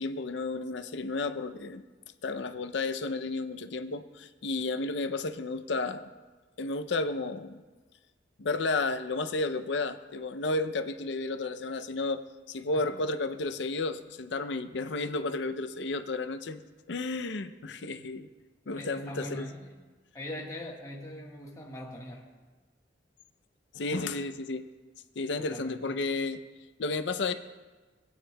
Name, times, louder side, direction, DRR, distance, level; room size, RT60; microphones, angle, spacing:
voice 1, 0.0-1.8 2.2-6.1 6.6-7.6 8.4-12.2 12.5-16.6 16.9-18.3 18.7-19.5 23.7-24.7 25.2-26.4 26.8-27.3, left 3 dB, 70° left, 9 dB, 0.5 m, -32 dB
voice 2, 18.7-19.8 20.1-22.3 25.4-26.0, left 1 dB, 20° left, -2 dB, 1.4 m, -41 dB
18.5 x 9.0 x 2.2 m, 1.3 s
head